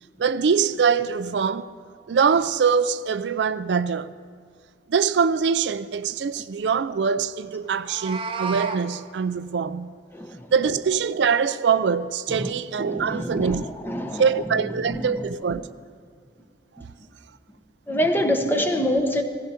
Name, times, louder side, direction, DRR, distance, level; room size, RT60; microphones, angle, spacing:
voice 1, 0.2-1.7 2.1-4.1 4.9-9.9 10.5-13.6 14.2-15.7, right 6 dB, 80° right, 0.4 m, -23 dB
Meow, 7.7-8.8, right 5 dB, 30° right, 0.9 m, -31 dB
voice 2, 10.1-10.5 12.3-15.2 17.9-19.2, equal, 10° left, 1.0 m, -26 dB
15.5 x 15.5 x 4.4 m
head